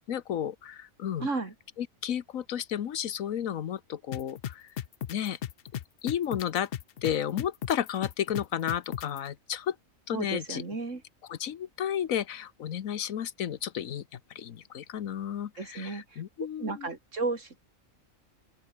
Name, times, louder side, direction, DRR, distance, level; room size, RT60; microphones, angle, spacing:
voice 1, 0.1-1.3 1.8-4.7 5.1-5.4 6.0-6.7 7.0-9.8 10.1-10.6 11.3-16.9, left 9 dB, 80° left, 1.4 m, -32 dB
voice 2, 1.2-1.5 10.1-11.0 15.6-17.6, right 3 dB, 65° right, 3.4 m, -34 dB
sound 1, 4.1-9.2, left 10 dB, 55° left, 0.7 m, -35 dB
open air
omnidirectional pair, 1.4 m